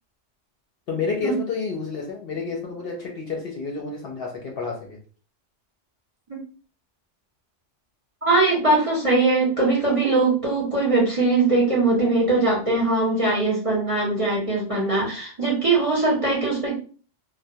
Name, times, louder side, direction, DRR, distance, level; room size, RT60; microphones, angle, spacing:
voice 1, 0.9-5.0, left 4 dB, 60° left, 0 dB, 0.7 m, -30 dB
voice 2, 8.3-16.8, right 2 dB, 35° right, -5 dB, 0.7 m, -21 dB
2.2 x 2.1 x 2.7 m, 0.39 s
omnidirectional pair, 1.2 m